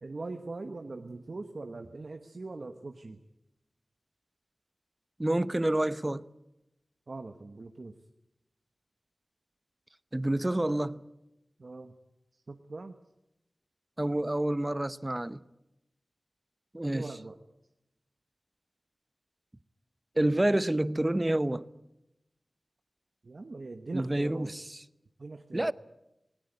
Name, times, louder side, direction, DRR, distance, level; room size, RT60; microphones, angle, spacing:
voice 1, 0.0-3.2 7.1-7.9 11.6-12.0 12.5-13.0 16.9-17.4 23.2-24.5 25.2-25.7, right 3 dB, 65° right, 1.2 m, -41 dB
voice 2, 5.2-6.2 10.1-11.0 14.0-15.4 16.7-17.1 20.2-21.6 23.9-24.8 25.5-25.7, right 1 dB, 25° right, 0.8 m, -28 dB
19.5 x 18.5 x 9.3 m
cardioid pair, 45°, 0 cm